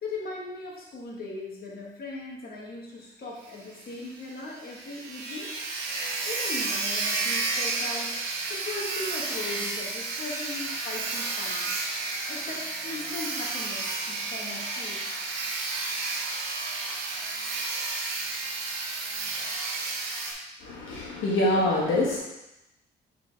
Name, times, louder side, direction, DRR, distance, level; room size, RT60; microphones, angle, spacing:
voice 1, 0.0-5.5 6.2-8.1 8.5-11.7 12.3-15.2, left 3 dB, 50° left, -4 dB, 1.6 m, -38 dB
Sawing, 3.4-3.5 3.8-3.9 4.3-4.4 4.6-20.3, right 3 dB, 80° right, 1.5 m, -31 dB
voice 2, 20.6-22.2, left 1 dB, 80° left, -4 dB, 1.7 m, -25 dB
7.6 x 4.0 x 3.4 m, 0.92 s
cardioid pair, 90°, 20 cm